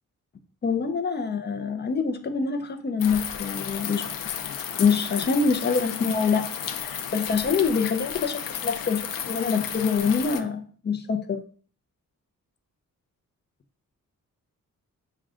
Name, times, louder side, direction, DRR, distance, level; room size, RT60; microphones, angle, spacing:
voice 1, 0.6-4.0 4.8-6.5 6.7-11.4, left 5 dB, 30° left, 7 dB, 0.5 m, -25 dB
sound 1, 3.0-10.4, left 8 dB, 85° left, 0.5 m, -33 dB
6.1 x 2.3 x 3.6 m, 0.43 s
wide cardioid pair, 145°, 33 cm